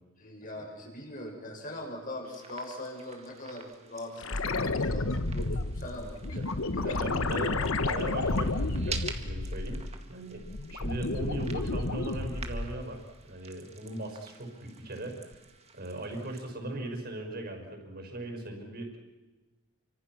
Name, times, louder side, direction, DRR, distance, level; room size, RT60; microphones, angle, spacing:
voice 1, 0.2-6.4 6.8-7.0, left 1 dB, 40° left, 1 dB, 6.7 m, -41 dB
sound 1, 2.2-16.5, right 5 dB, 30° right, 2.0 m, -48 dB
sound 2, 4.2-10.0 10.4-12.9 15.3-15.4, left 2 dB, 65° left, 1.2 m, -31 dB
voice 2, 6.8-7.6 7.8-10.4 10.7-15.2 15.7-19.0, right 2 dB, 45° right, 4 dB, 5.8 m, -38 dB
30.0 x 25.0 x 6.2 m, 1.2 s
head